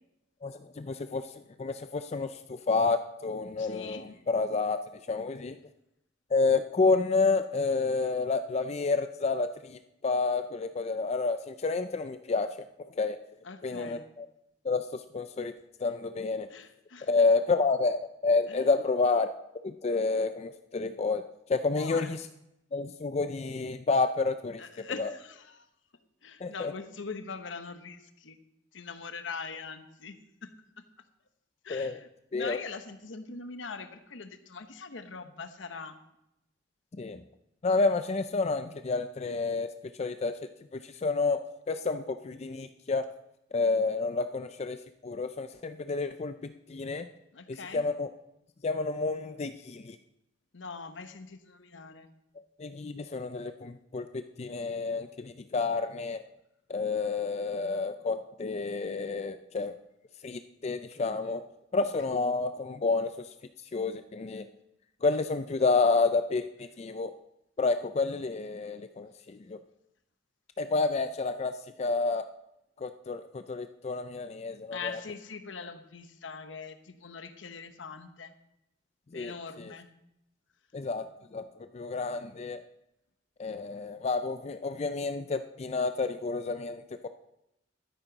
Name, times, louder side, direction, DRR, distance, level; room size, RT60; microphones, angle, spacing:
voice 1, 0.4-1.3 1.6-4.8 5.1-5.6 6.3-13.2 13.6-14.3 14.6-15.5 15.8-16.5 17.1-19.3 19.6-21.2 21.5-22.2 22.7-24.6 25.0-25.1 26.4-26.7 31.7-32.0 32.3-32.6 37.0-37.2 37.6-39.7 40.0-40.4 40.7-41.4 41.7-43.1 43.5-44.8 45.0-47.1 47.5-48.1 48.6-50.0 52.6-56.2 56.7-59.8 60.2-61.4 61.7-63.3 63.7-64.4 65.0-67.1 67.6-69.6 70.6-71.5 71.8-72.2 72.8-75.0 79.1-79.7 80.7-81.1 81.3-81.4 81.7-82.6 83.4-87.1, left 3 dB, 35° left, 9 dB, 0.4 m, -29 dB
voice 2, 3.6-4.0 13.4-14.1 15.8-16.0 16.5-17.3 18.5-18.6 21.7-22.2 24.6-25.7 26.2-28.4 28.7-30.5 31.6-36.0 47.3-47.8 50.5-52.1 61.8-61.9 74.7-78.3 79.1-79.9, left 5 dB, 85° left, 9 dB, 1.0 m, -42 dB
12.5 x 10.5 x 4.0 m, 0.84 s
head